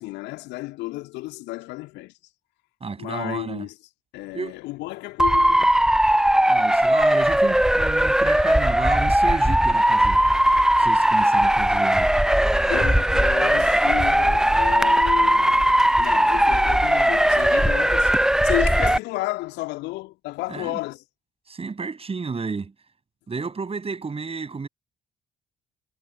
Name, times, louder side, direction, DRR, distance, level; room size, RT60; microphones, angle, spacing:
voice 1, 0.0-2.1 3.0-3.7 4.1-5.7 12.7-15.6 15.9-21.0, left 20 dB, 60° left, 2.3 m, -32 dB
voice 2, 2.8-3.7 4.3-4.6 6.5-10.2 10.8-12.1 20.5-20.8 21.5-22.7 23.3-24.7, right 4 dB, 30° right, 8.0 m, -32 dB
Motor vehicle (road) / Siren, 5.2-19.0, right 1 dB, 5° right, 0.8 m, -19 dB
figure-of-eight pair, 45°, 19 cm